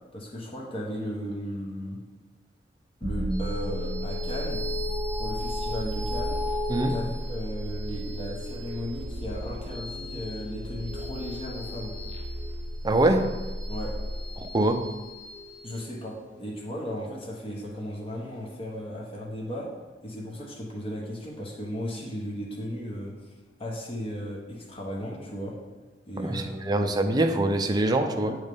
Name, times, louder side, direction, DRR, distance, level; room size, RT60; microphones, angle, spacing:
voice 1, 0.1-2.0 3.0-4.6 5.2-6.4 6.9-11.9 13.7-13.9 15.6-19.7 20.0-23.3 23.6-25.6 26.1-26.9 28.2-28.4, equal, 35° left, -3 dB, 1.0 m, -36 dB
sound 1, 3.0-15.1, equal, 65° right, 0.9 m, -34 dB
sound 2, 3.3-18.1, left 2 dB, 5° left, 1.3 m, -38 dB
voice 2, 12.8-13.3 14.4-14.9 26.2-28.3, right 2 dB, 25° right, 5 dB, 0.5 m, -24 dB
8.1 x 3.2 x 5.3 m, 1.2 s
head